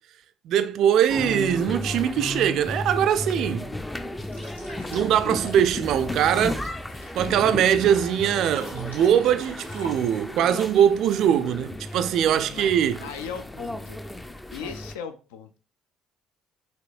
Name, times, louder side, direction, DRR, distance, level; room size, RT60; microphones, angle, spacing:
voice 1, 0.5-3.7 4.9-6.7 7.2-13.1, right 9 dB, 55° right, 0.3 m, -22 dB
sound 1, 1.1-14.9, left 1 dB, 10° left, 0.4 m, -34 dB
sound 2, 4.1-10.4, right 1 dB, 85° left, 1.2 m, -45 dB
voice 2, 13.0-14.0 14.5-15.6, left 7 dB, 70° left, 0.5 m, -37 dB
5.8 x 3.0 x 2.5 m
figure-of-eight pair, 50°, 0 cm